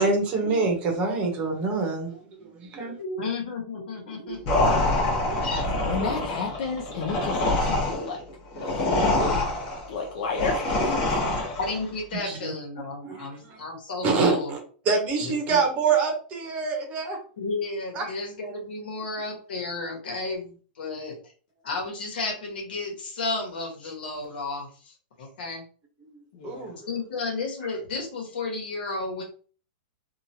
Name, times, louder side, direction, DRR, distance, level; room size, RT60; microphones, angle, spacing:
voice 1, 0.0-3.0 4.2-4.6 5.3-5.4 7.9-8.1 12.2-12.5 13.0-13.6 14.0-14.6 14.8-17.2 17.9-18.2 26.4-26.7, right 4 dB, 25° right, 2 dB, 0.8 m, -26 dB
voice 2, 3.0-4.8 5.4-5.7 8.9-9.0 11.6-14.5 15.2-15.6 17.4-21.2 21.6-25.6 26.9-29.2, left 3 dB, 80° left, 1 dB, 1.2 m, -32 dB
sound 1, 4.5-11.8, left 2 dB, 35° left, 1.1 m, -25 dB
voice 3, 5.7-8.2 8.6-9.4 9.9-11.4 26.3-26.8, left 5 dB, 55° left, 0 dB, 0.6 m, -32 dB
2.9 x 2.4 x 2.8 m, 0.41 s
supercardioid pair, 160°, 5 cm